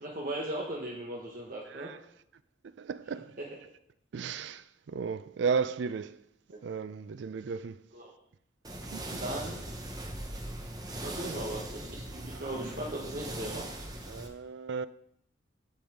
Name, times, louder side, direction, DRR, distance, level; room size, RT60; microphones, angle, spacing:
voice 1, 0.0-1.9 3.4-3.5 6.5-6.6 7.9-8.1 9.1-9.6 11.0-13.7, right 1 dB, 45° right, 1.2 m, -38 dB
voice 2, 1.7-2.0 2.8-3.3 4.1-6.2 6.6-7.8 8.9-9.0 12.3-12.6 14.1-14.9, right 5 dB, 70° right, 0.4 m, -34 dB
sound 1, 8.6-14.3, right 1 dB, 20° right, 0.9 m, -40 dB
15.0 x 5.3 x 3.6 m
head